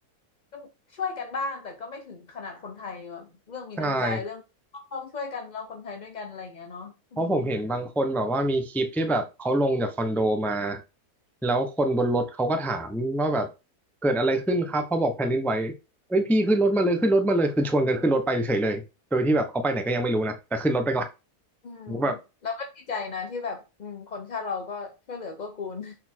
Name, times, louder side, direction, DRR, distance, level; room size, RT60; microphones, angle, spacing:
voice 1, 0.5-4.4 4.7-7.4 21.6-22.1 22.4-26.0, left 4 dB, 40° left, 0.6 m, -36 dB
voice 2, 3.8-4.2 7.2-10.8 11.4-13.5 14.0-15.7 16.1-18.8 19.1-21.1 21.9-22.2, right 1 dB, ahead, 0.6 m, -24 dB
6.5 x 4.4 x 4.4 m
omnidirectional pair, 1.7 m